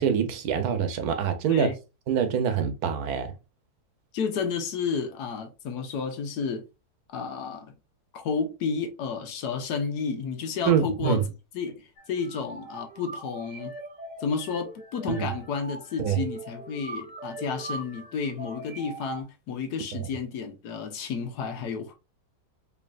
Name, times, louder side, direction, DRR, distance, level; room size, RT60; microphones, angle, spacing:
voice 1, 0.0-1.7 2.1-3.3 10.7-11.3 15.1-15.3 16.0-16.3 19.9-20.1, right 7 dB, 75° right, 1.2 m, -25 dB
voice 2, 4.1-6.6 7.1-7.7 8.1-11.2 11.5-13.7 14.2-21.9, left 5 dB, 85° left, 1.4 m, -31 dB
sound 1, 12.0-19.2, right 2 dB, 5° right, 0.9 m, -41 dB
4.5 x 3.2 x 2.4 m
omnidirectional pair, 1.7 m